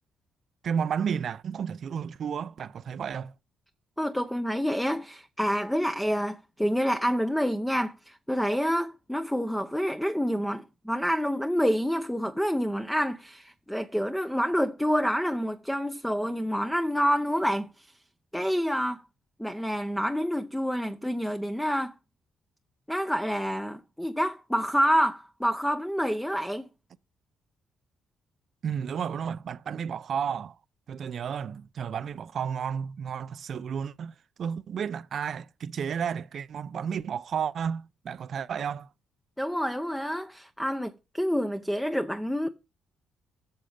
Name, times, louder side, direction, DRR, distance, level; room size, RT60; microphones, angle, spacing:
voice 1, 0.6-3.3 28.6-30.6 30.9-38.9, right 7 dB, 60° right, 0.5 m, -32 dB
voice 2, 4.0-17.9 18.3-19.0 19.4-22.0 22.9-26.7 39.4-42.5, equal, 5° left, 0.6 m, -28 dB
7.8 x 6.8 x 5.0 m
cardioid pair, 90°, 0 cm